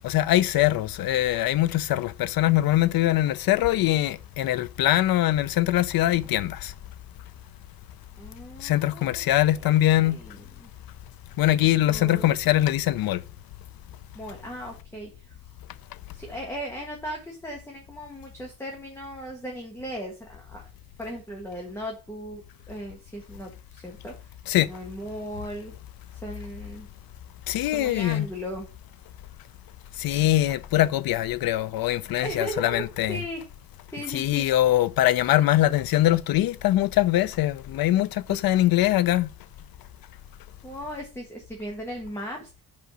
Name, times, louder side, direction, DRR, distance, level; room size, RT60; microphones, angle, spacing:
voice 1, 0.0-6.7 8.6-10.2 11.4-13.2 24.5-24.7 27.5-28.3 30.0-33.2 34.1-39.3, left 14 dB, 80° left, 0.6 m, -22 dB
voice 2, 8.2-9.3 9.5-10.7 11.9-12.3 14.1-15.2 16.1-20.6 21.0-24.3 24.7-25.7 26.2-26.9 27.6-28.7 32.2-33.4 33.9-34.6 38.3-38.4 40.6-42.6, equal, 10° left, 1.5 m, -37 dB
5.6 x 5.0 x 6.2 m
cardioid pair, 160°, 35 cm